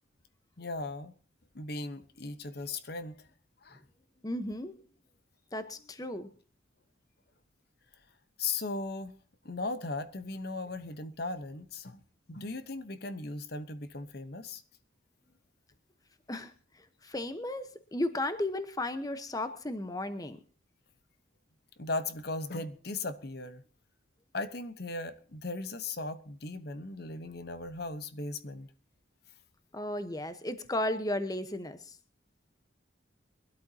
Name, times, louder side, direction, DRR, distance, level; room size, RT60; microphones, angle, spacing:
voice 1, 0.6-1.1 1.5-3.3 3.6-3.8 8.4-9.1 9.4-12.0 12.3-14.6 21.8-23.6 24.3-28.7, left 3 dB, 50° left, 1.0 m, -37 dB
voice 2, 4.2-4.7 5.5-6.3 16.3-20.4 29.7-32.0, left 1 dB, 20° left, 1.0 m, -35 dB
23.0 x 12.5 x 2.8 m
head